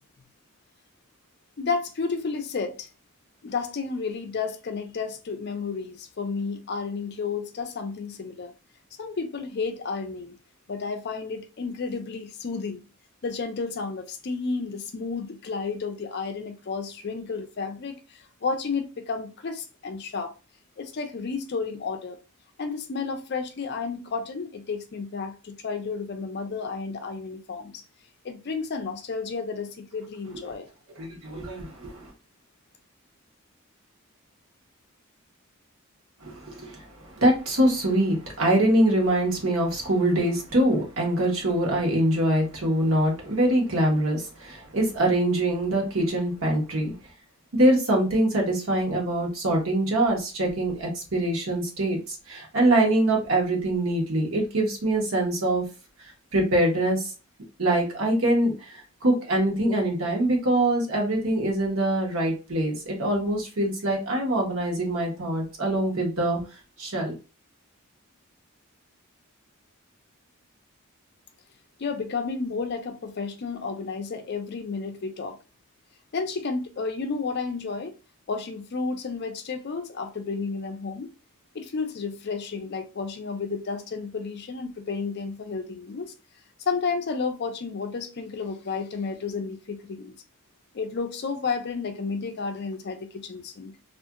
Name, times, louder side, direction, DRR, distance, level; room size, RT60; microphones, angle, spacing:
voice 1, 1.6-2.9 3.4-8.5 9.0-10.3 10.7-12.8 13.2-20.3 20.8-22.2 22.6-27.8 28.2-30.7 71.8-75.4 76.1-78.0 78.3-81.1 81.5-86.1 86.7-90.1 90.7-93.7, left 4 dB, 50° left, 0.4 m, -32 dB
voice 2, 31.0-32.1 36.2-46.9 47.5-55.6 56.0-57.1 57.6-66.4 66.8-67.2, right 1 dB, 65° right, 1.0 m, -24 dB
2.7 x 2.4 x 2.4 m
head